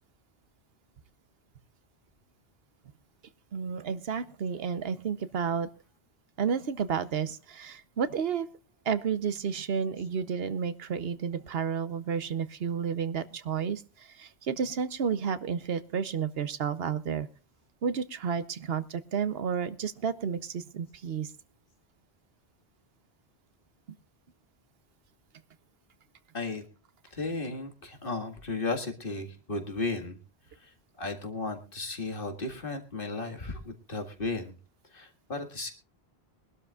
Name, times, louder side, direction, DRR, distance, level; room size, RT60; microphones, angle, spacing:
voice 1, 3.5-5.7 6.4-8.5 8.9-17.3 17.8-21.3, right 7 dB, 70° right, 13 dB, 1.0 m, -31 dB
voice 2, 27.1-30.2 30.6-34.5 34.9-35.7, left 3 dB, 60° left, 5 dB, 2.0 m, -35 dB
23.0 x 12.0 x 2.4 m, 0.33 s
omnidirectional pair, 1.1 m